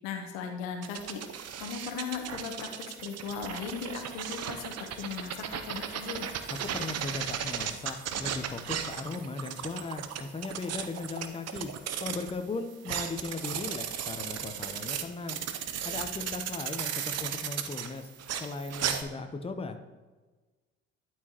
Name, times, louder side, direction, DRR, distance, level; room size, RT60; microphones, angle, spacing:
voice 1, 0.0-6.3, left 6 dB, 75° left, 4 dB, 1.1 m, -38 dB
sound 1, 0.8-12.4 12.7-19.0, right 8 dB, 50° right, 0.8 m, -36 dB
voice 2, 6.5-11.7 12.0-15.4 15.8-19.8, left 3 dB, 15° left, 7 dB, 0.8 m, -37 dB
12.0 x 4.7 x 3.0 m, 1.3 s
hypercardioid pair, 50°, 34 cm